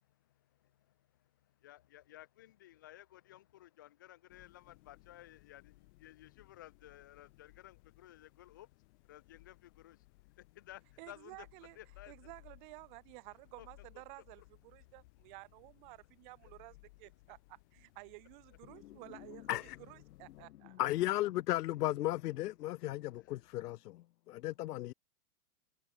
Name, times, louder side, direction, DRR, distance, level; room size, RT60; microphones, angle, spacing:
voice 1, 1.0-11.5 11.8-12.1 13.6-13.7 14.8-14.9 23.2-23.4, left 14 dB, 15° left, 0.3 m, -56 dB
sound 1, 4.3-20.5, left 23 dB, 45° left, 2.5 m, -63 dB
voice 2, 11.0-11.8 12.1-20.9, right 26 dB, 30° right, 0.6 m, -53 dB
voice 3, 20.8-24.9, left 16 dB, 80° left, 0.5 m, -35 dB
hypercardioid pair, 135°, 47 cm